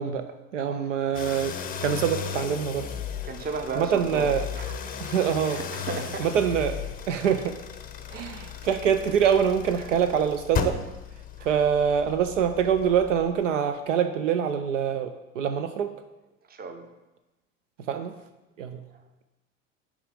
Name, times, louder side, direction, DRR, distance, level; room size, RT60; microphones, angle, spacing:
voice 1, 0.5-1.5 1.8-2.9 3.7-4.5 5.0-5.6 6.2-6.8 7.1-7.6 8.1-10.8 11.5-15.9 17.9-18.1 18.6-18.8, right 8 dB, 70° right, 9 dB, 0.6 m, -25 dB
sound 1, 1.1-13.5, left 7 dB, 20° left, 0.6 m, -35 dB
voice 2, 3.2-4.9 5.5-6.3 9.7-9.9 11.4-11.6 16.5-16.9, right 4 dB, 25° right, 7 dB, 0.9 m, -35 dB
7.0 x 4.8 x 5.4 m, 1.1 s
figure-of-eight pair, 70°, 40 cm